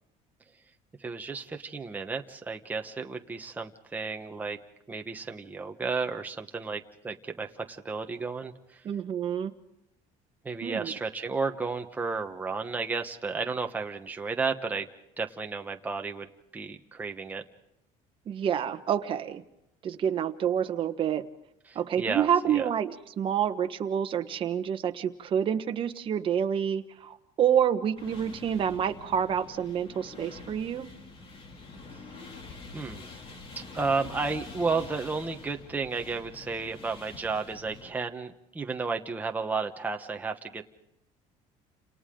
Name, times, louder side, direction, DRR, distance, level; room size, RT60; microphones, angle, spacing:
voice 1, 1.0-4.6 4.9-8.8 10.4-14.9 15.2-17.4 21.7-22.7 32.7-33.1 33.6-40.6, right 4 dB, 10° right, 4 dB, 1.1 m, -33 dB
voice 2, 8.8-9.5 10.6-10.9 18.3-19.4 19.8-21.3 21.7-30.9, right 8 dB, 35° right, 7 dB, 1.3 m, -28 dB
sound 1, 28.0-37.9, left 3 dB, 40° left, 2.8 m, -46 dB
30.0 x 27.5 x 3.8 m, 0.84 s
cardioid pair, 155°, 15 cm